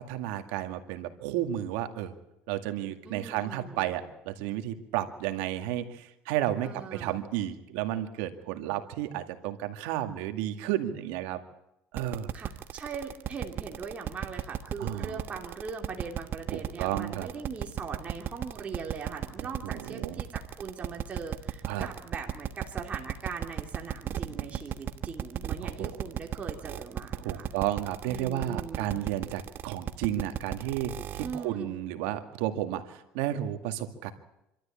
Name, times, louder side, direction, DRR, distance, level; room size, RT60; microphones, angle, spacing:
voice 1, 0.0-2.1 2.5-11.4 11.9-12.3 14.8-15.2 16.5-17.3 19.6-20.2 21.6-21.9 24.3-24.4 25.6-25.9 27.2-34.1, right 12 dB, 85° right, 7 dB, 2.1 m, -32 dB
voice 2, 3.0-4.1 6.6-7.2 12.3-27.5 28.1-29.0 31.2-31.8, right 5 dB, 30° right, 0 dB, 2.9 m, -40 dB
sound 1, 12.0-31.4, right 10 dB, 50° right, 1.3 m, -34 dB
26.0 x 13.0 x 8.6 m, 0.85 s
supercardioid pair, 110°, 5 cm